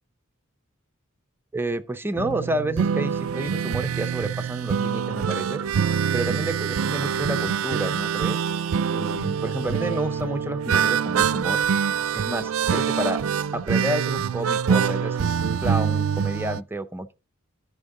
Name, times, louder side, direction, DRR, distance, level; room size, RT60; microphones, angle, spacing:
voice 1, 1.5-5.6 6.1-8.4 8.9-11.6 12.1-13.2 13.5-15.3 15.6-17.1, right 1 dB, 10° right, 0.6 m, -30 dB
sound 1, 2.2-16.6, right 7 dB, 80° right, 0.4 m, -25 dB
13.5 x 5.4 x 3.7 m
head